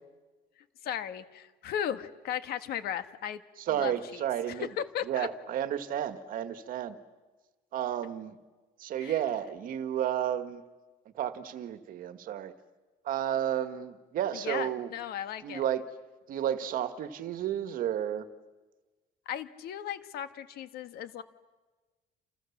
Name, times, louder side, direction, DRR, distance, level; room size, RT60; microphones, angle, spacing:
voice 1, 0.8-3.4 3.8-3.9 4.6-5.3 9.0-9.1 14.4-15.6 19.3-21.2, left 9 dB, 65° left, 11 dB, 1.6 m, -36 dB
voice 2, 3.6-4.7 5.1-7.0 7.7-8.4 8.8-10.6 11.2-12.5 13.1-14.9 15.4-15.9 16.3-18.3, right 10 dB, 55° right, 11 dB, 1.6 m, -32 dB
29.0 x 28.5 x 7.2 m, 1.3 s
cardioid pair, 170°, 17 cm